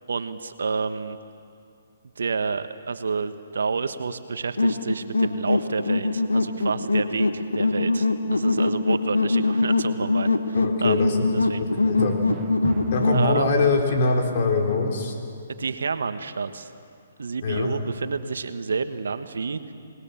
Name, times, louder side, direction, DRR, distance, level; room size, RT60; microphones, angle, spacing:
voice 1, 0.1-1.2 2.2-11.1 11.3-11.6 13.1-13.7 15.6-16.7 17.2-19.6, right 5 dB, 75° right, 10 dB, 1.2 m, -29 dB
sound 1, 4.6-13.2, left 3 dB, 90° left, 1.5 m, -23 dB
voice 2, 10.6-12.2 12.9-15.1 17.4-17.8, left 3 dB, 50° left, 1 dB, 4.0 m, -24 dB
Drum, 12.0-14.0, right 9 dB, 30° right, 1.0 m, -35 dB
26.5 x 19.5 x 7.1 m, 2.4 s
hypercardioid pair, 135°, 0 cm